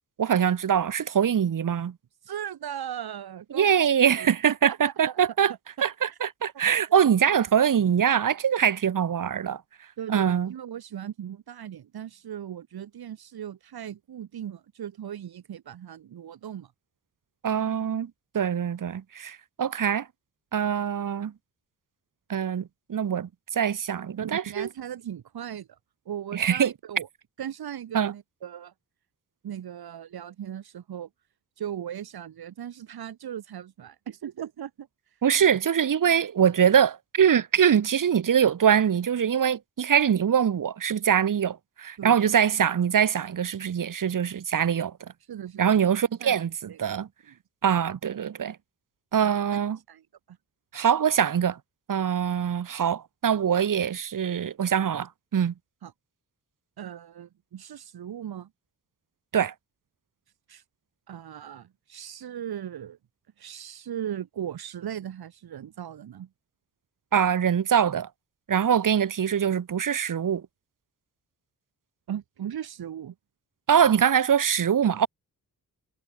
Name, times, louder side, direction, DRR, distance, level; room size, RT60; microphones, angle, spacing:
voice 1, 0.2-1.9 3.5-5.5 5.8-9.6 10.1-10.5 17.4-20.1 20.5-21.3 22.3-24.7 26.3-26.7 27.9-28.1 35.2-44.9 45.6-47.1 47.6-48.6 49.1-49.8 50.7-51.6 51.9-55.5 59.3-59.5 67.1-68.1 68.5-70.4 73.7-75.1, right 8 dB, 60° right, 2.2 m, -23 dB
voice 2, 2.2-3.9 4.2-5.2 7.3-7.4 10.0-16.7 24.2-25.8 26.1-27.1 27.4-28.7 29.4-31.1 31.6-34.9 42.0-42.3 45.3-45.8 46.2-47.1 49.2-49.3 49.9-50.0 50.3-50.4 55.8-55.9 56.8-58.5 60.5-60.6 61.1-63.0 63.4-66.3 72.1-73.1, right 10 dB, 80° right, 1.9 m, -38 dB
wide cardioid pair, 175°, 37 cm